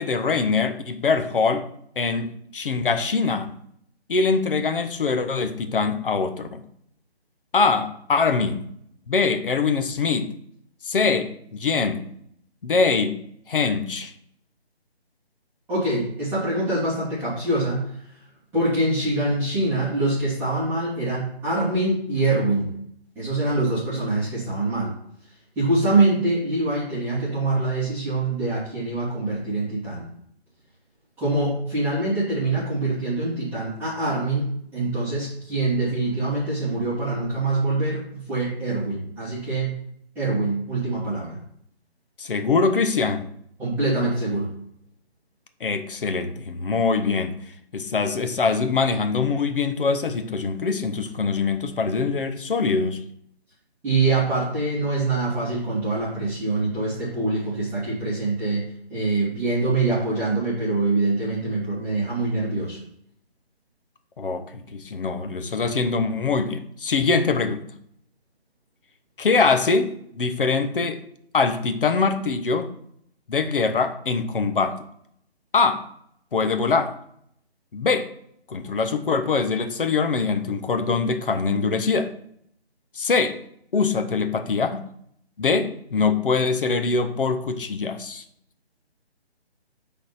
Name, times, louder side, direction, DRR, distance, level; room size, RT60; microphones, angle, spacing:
voice 1, 0.0-1.6 2.0-3.5 4.1-6.6 7.5-8.7 9.1-10.3 10.8-12.0 12.6-13.2 13.5-14.1 42.2-43.3 45.6-47.3 47.7-53.0 64.2-67.6 69.2-71.0 71.3-72.7 73.3-74.8 75.5-75.8 76.3-77.0 77.7-78.1 78.5-82.1 82.9-83.4 83.7-84.8 85.4-88.2, left 4 dB, 55° left, 8 dB, 1.0 m, -23 dB
voice 2, 15.7-17.9 18.5-22.7 23.2-24.9 25.6-30.0 31.2-39.7 40.2-41.4 43.6-44.5 53.8-62.8, right 2 dB, 5° right, -13 dB, 2.0 m, -24 dB
6.4 x 4.1 x 5.8 m, 0.68 s
figure-of-eight pair, 160°, 32 cm